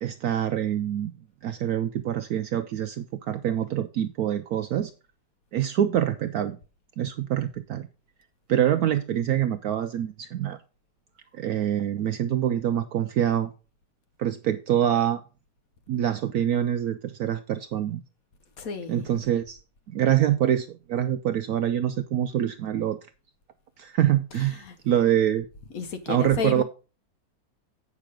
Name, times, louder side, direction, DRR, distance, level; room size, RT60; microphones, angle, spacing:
voice 1, 0.0-1.1 1.4-4.9 5.5-6.6 7.0-7.9 8.5-10.6 11.3-13.5 14.2-15.2 15.9-18.0 18.9-19.6 19.9-23.0 23.8-25.5 26.1-26.6, right 10 dB, 70° right, 0.9 m, -25 dB
voice 2, 18.6-19.1 24.3-24.8 25.7-26.6, left 5 dB, 60° left, 1.1 m, -32 dB
8.3 x 6.0 x 5.0 m
omnidirectional pair, 2.0 m